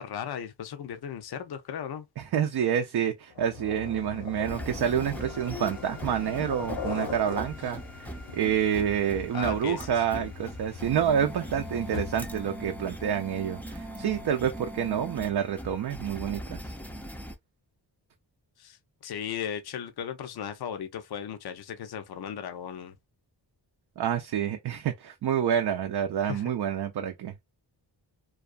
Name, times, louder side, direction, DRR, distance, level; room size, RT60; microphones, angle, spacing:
voice 1, 0.0-2.0 9.3-10.3 18.6-18.8 19.0-23.0 26.2-26.4, left 8 dB, 60° left, 0.6 m, -36 dB
voice 2, 2.2-16.7 24.0-27.3, right 9 dB, 60° right, 0.5 m, -28 dB
sound 1, 3.3-12.4, left 6 dB, 75° left, 0.9 m, -40 dB
sound 2, 4.4-17.3, equal, 5° left, 0.4 m, -40 dB
2.4 x 2.3 x 2.4 m
cardioid pair, 65°, 44 cm